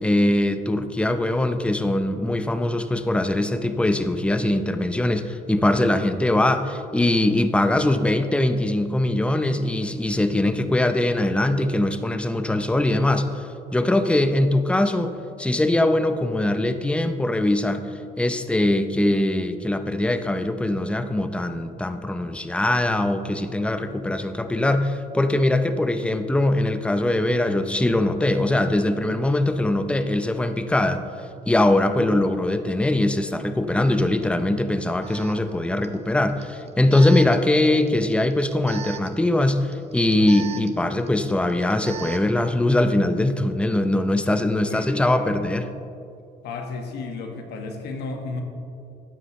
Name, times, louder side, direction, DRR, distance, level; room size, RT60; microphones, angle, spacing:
voice 1, 0.0-13.4 13.7-17.8 18.2-31.0 31.5-45.7, left 1 dB, 5° left, 9 dB, 0.6 m, -22 dB
Alarm, 34.2-34.3 35.0-42.4, right 9 dB, 40° right, 0.8 m, -41 dB
voice 2, 44.6-45.4 46.4-48.4, left 3 dB, 75° left, 4 dB, 1.5 m, -33 dB
13.5 x 9.8 x 3.2 m, 2.5 s
cardioid pair, 110°, 17 cm